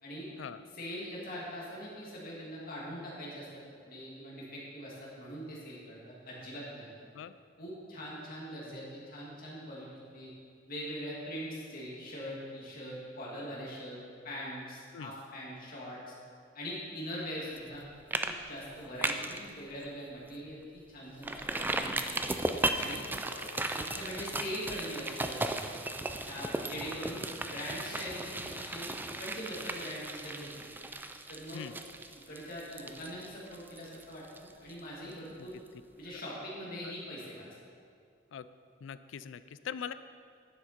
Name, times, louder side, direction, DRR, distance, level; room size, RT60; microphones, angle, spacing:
voice 1, 0.8-6.9 7.6-9.9 10.1-10.3 10.7-14.0 14.2-16.1 16.5-17.8 18.2-22.2 22.7-23.0 23.7-25.6 26.3-28.9 29.2-30.7 31.3-31.7 32.3-35.6 36.0-37.4, equal, 50° left, -5 dB, 2.4 m, -42 dB
sound 1, 17.6-17.8 18.1-18.3 18.6-19.4 19.8-19.9 20.3-20.4 21.2-34.8 35.1-35.2, right 2 dB, 10° right, 0.4 m, -36 dB
voice 2, 23.3-23.7 31.5-31.8 35.4-35.5 36.8-36.9 38.3-38.5 38.8-39.9, left 7 dB, 70° left, 14 dB, 0.4 m, -42 dB
10.5 x 7.1 x 4.4 m, 2.2 s
head